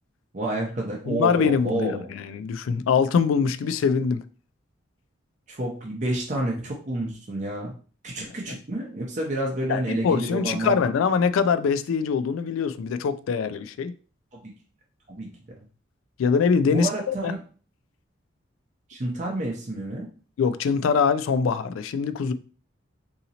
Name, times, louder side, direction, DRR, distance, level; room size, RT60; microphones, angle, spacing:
voice 1, 0.3-2.1 5.5-7.7 8.0-10.9 14.3-14.5 15.1-15.3 16.7-17.4 18.9-20.1, right 1 dB, 35° right, 0.6 m, -29 dB
voice 2, 1.1-4.2 8.5-8.6 9.7-13.9 16.2-17.3 20.4-22.3, left 6 dB, 80° left, 0.3 m, -23 dB
3.9 x 2.8 x 2.8 m
head